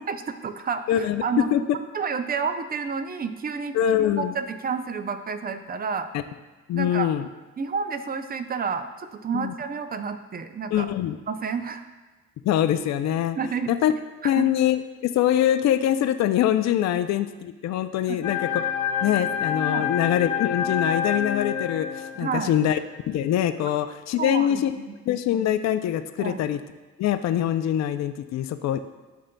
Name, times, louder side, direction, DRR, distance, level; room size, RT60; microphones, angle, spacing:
voice 1, 0.1-1.5 1.9-6.1 6.7-7.1 7.6-10.9 11.3-11.9 13.4-13.7 14.2-14.5 18.1-18.3 19.7-19.9 22.1-22.6 24.2-25.0 26.2-26.4, right 5 dB, 30° right, 9 dB, 0.5 m, -30 dB
voice 2, 0.9-1.2 1.5-1.6 3.7-4.3 6.1-6.2 6.7-7.3 9.3-9.5 10.7-11.2 12.4-13.4 13.7-13.9 14.2-18.6 19.0-22.8 23.1-24.7 25.1-26.6 27.0-28.8, left 11 dB, 60° left, 10 dB, 0.4 m, -24 dB
sound 1, 18.2-22.7, left 8 dB, 90° left, 0.8 m, -28 dB
11.5 x 3.8 x 2.2 m, 1.3 s
cardioid pair, 90°, 30 cm